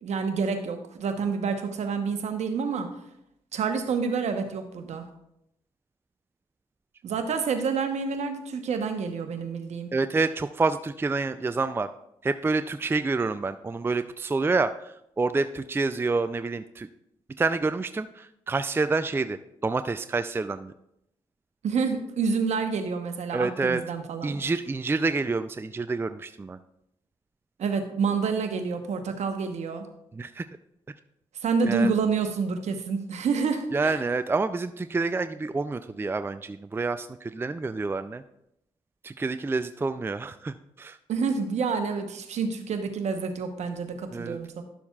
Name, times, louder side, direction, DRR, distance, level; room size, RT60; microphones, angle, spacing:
voice 1, 0.0-2.9 3.5-5.0 7.0-9.9 21.6-24.4 27.6-29.9 31.4-33.9 41.1-44.6, right 5 dB, 65° right, 6 dB, 1.0 m, -28 dB
voice 2, 9.9-11.9 12.2-16.9 17.4-20.7 23.3-23.8 24.2-26.6 30.1-30.4 31.6-31.9 33.7-38.2 39.0-41.0 44.1-44.4, right 3 dB, 20° right, 11 dB, 0.4 m, -28 dB
11.5 x 6.9 x 2.4 m, 0.80 s
hypercardioid pair, 45°, 12 cm